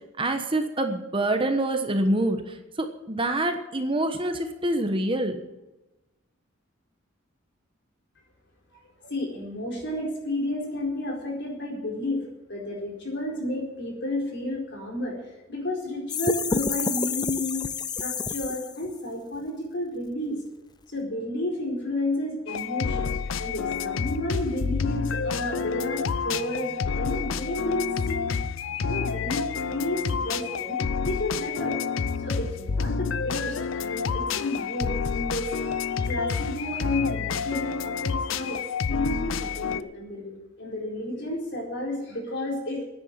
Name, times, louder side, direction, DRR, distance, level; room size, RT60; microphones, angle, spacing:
voice 1, 0.2-5.4, right 1 dB, 25° right, 6 dB, 1.2 m, -26 dB
voice 2, 8.7-12.2 12.5-15.2 15.5-17.6 18.0-20.4 20.9-23.1 23.4-28.2 28.8-31.8 32.2-38.6 38.9-42.8, left 1 dB, 60° left, 0 dB, 4.3 m, -31 dB
sound 1, 16.1-18.9, left 5 dB, 20° left, 0.4 m, -29 dB
sound 2, 22.5-39.8, left 5 dB, 75° left, 0.5 m, -29 dB
10.0 x 9.9 x 9.6 m, 1.0 s
head